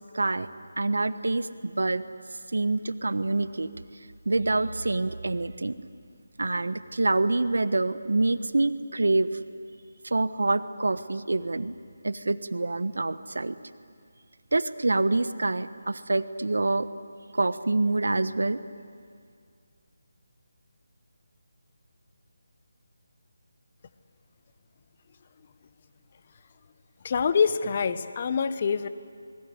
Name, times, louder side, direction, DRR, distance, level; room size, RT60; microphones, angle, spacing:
voice 1, 0.1-0.5 0.8-2.0 2.5-3.8 4.2-5.7 6.4-9.4 10.0-11.7 12.0-13.6 14.5-16.9 17.3-18.6, right 2 dB, 75° right, 13 dB, 1.3 m, -26 dB
voice 2, 27.0-28.9, left 6 dB, 40° left, 13 dB, 1.1 m, -25 dB
27.5 x 21.0 x 9.7 m, 2.2 s
figure-of-eight pair, 155°, 0 cm